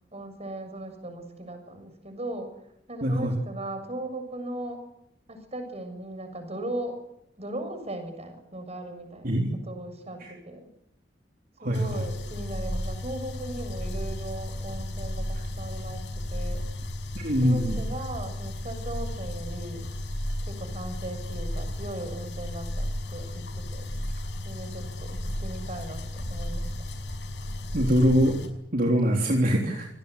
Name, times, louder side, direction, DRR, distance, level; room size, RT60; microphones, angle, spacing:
voice 1, 0.1-4.9 5.3-7.0 7.4-9.3 9.6-10.7 11.6-16.7 17.4-19.8 20.5-23.9 24.4-25.1 25.4-26.9, right 1 dB, 35° right, 7 dB, 7.0 m, -38 dB
voice 2, 3.0-3.4 9.2-9.5 10.2-10.3 11.6-12.0 17.1-17.8 27.7-28.4 28.7-29.9, equal, 55° right, 0 dB, 3.6 m, -23 dB
sound 1, 11.7-28.5, left 1 dB, 80° left, 5.5 m, -34 dB
27.5 x 19.5 x 8.4 m, 0.81 s
head